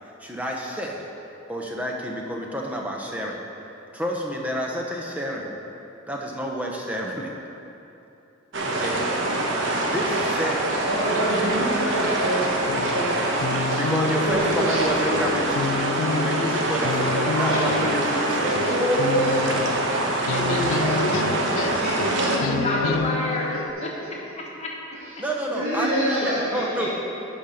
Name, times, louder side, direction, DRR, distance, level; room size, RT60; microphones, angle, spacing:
voice 1, 0.2-1.1 1.5-3.4 3.9-5.6 6.1-7.3 8.6-9.0 9.8-10.8 13.7-18.8 25.2-26.9, equal, 5° right, -1 dB, 0.8 m, -29 dB
sound 1, 8.5-22.4, right 2 dB, 60° right, 1.0 m, -25 dB
voice 2, 10.4-12.5 12.9-13.4 13.7-13.8 14.2-15.3 17.1-17.7 18.4-19.5 20.1-23.0 24.9-25.2 25.5-26.9, right 1 dB, 80° right, -12 dB, 2.1 m, -27 dB
sound 2, 12.7-23.7, left 5 dB, 75° left, 0.3 m, -30 dB
voice 3, 22.6-23.9 24.4-25.0, left 2 dB, 30° left, -2 dB, 1.3 m, -29 dB
9.9 x 5.0 x 5.7 m, 2.9 s
head